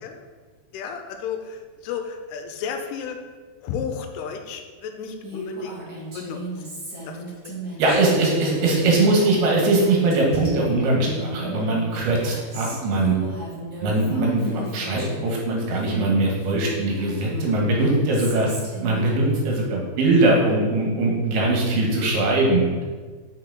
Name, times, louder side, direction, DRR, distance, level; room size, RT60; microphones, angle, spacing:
voice 1, 0.7-3.2 3.6-5.8 6.1-6.4 7.1-7.2 7.8-8.2 12.7-12.8 14.1-14.3, left 6 dB, 90° left, 5 dB, 2.6 m, -33 dB
Female speech woman speaking, 5.2-15.3 15.7-19.6, right 1 dB, 40° right, 1.5 m, -35 dB
voice 2, 7.8-13.1 13.8-18.5 18.8-22.8, right 2 dB, 75° right, -2 dB, 3.2 m, -21 dB
6.2 x 5.7 x 3.8 m, 1.5 s
omnidirectional pair, 4.6 m